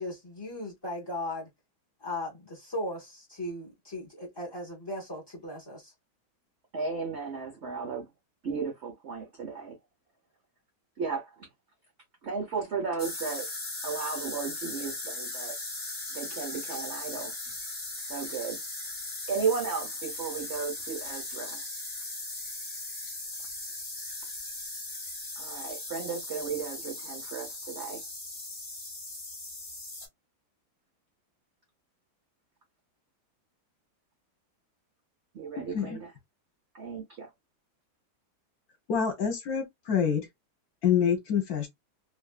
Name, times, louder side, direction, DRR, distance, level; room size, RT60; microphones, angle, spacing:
voice 1, 0.0-1.5 2.0-5.9, left 1 dB, 35° left, 0.4 m, -37 dB
voice 2, 6.7-8.1 8.4-9.8 11.0-11.5 12.2-13.5 13.8-15.6 16.1-17.3 18.1-18.6 19.3-21.6 25.4-28.0 35.3-36.1 36.7-37.3, right 5 dB, 75° right, 0.6 m, -34 dB
sound 1, 13.0-30.1, left 2 dB, 20° left, 0.8 m, -38 dB
voice 3, 35.6-36.0 38.9-40.3 40.8-41.7, left 7 dB, 55° left, 1.2 m, -27 dB
3.1 x 2.5 x 2.3 m
omnidirectional pair, 2.2 m